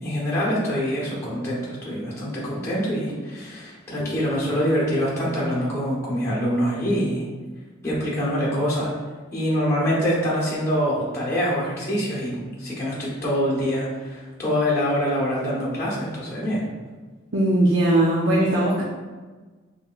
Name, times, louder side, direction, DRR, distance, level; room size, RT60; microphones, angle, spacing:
voice 1, 0.0-7.2 7.8-8.9 9.3-16.7, equal, 15° left, -8 dB, 0.9 m, -25 dB
voice 2, 17.3-18.8, right 1 dB, 65° right, -7 dB, 0.6 m, -19 dB
4.9 x 3.2 x 2.3 m, 1.3 s
head